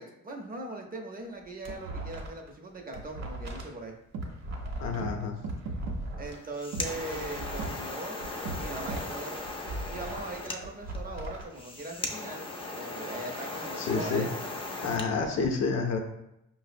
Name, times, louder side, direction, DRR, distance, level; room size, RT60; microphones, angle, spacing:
voice 1, 0.0-3.9 6.2-8.2 8.6-9.5 9.9-12.4 12.8-14.3 15.0-15.3, right 2 dB, 30° right, 2 dB, 0.5 m, -40 dB
sound 1, 1.2-2.5 2.8-6.4 6.8-9.1 9.4-11.4, right 1 dB, 60° right, 0.8 m, -39 dB
sound 2, 4.1-4.3 5.0-5.1 5.4-6.0 6.7-6.9 7.6-7.7 8.5-8.6 8.9-9.0, right 3 dB, 90° right, 0.5 m, -34 dB
voice 2, 4.8-5.3 13.8-14.3 14.8-16.0, left 4 dB, 60° left, 3 dB, 0.7 m, -29 dB
sound 3, 6.3-15.1, left 2 dB, 20° left, 0.4 m, -38 dB
4.9 x 2.0 x 2.5 m, 0.83 s
cardioid pair, 90°, 30 cm